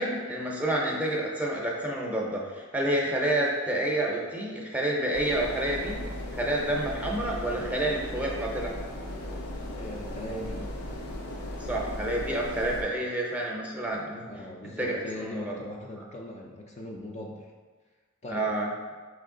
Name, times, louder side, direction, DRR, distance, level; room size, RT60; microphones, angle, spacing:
voice 1, 0.0-6.0 6.3-8.7 11.6-14.3 14.6-15.5 18.3-18.7, right 1 dB, 5° right, -2 dB, 0.6 m, -29 dB
sound 1, 5.1-12.8, left 1 dB, 85° left, 0.6 m, -37 dB
voice 2, 9.7-10.7 14.3-17.5 18.2-18.5, left 1 dB, 30° left, -1 dB, 0.4 m, -40 dB
4.4 x 3.2 x 3.7 m, 1.5 s
head